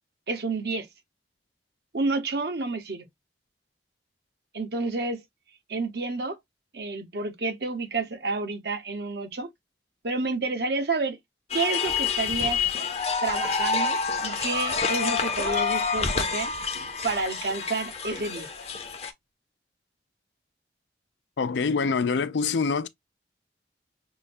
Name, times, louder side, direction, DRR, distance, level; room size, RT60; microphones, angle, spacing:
voice 1, 0.3-0.9 1.9-3.1 4.5-5.2 5.7-6.4 6.7-9.5 10.0-11.2 11.5-12.6 13.2-16.5 17.0-18.5, right 3 dB, 65° right, 0.9 m, -29 dB
sound 1, 11.5-19.1, left 5 dB, 35° left, 0.7 m, -28 dB
voice 2, 21.4-22.9, left 5 dB, 85° left, 0.5 m, -25 dB
5.8 x 2.2 x 2.6 m
head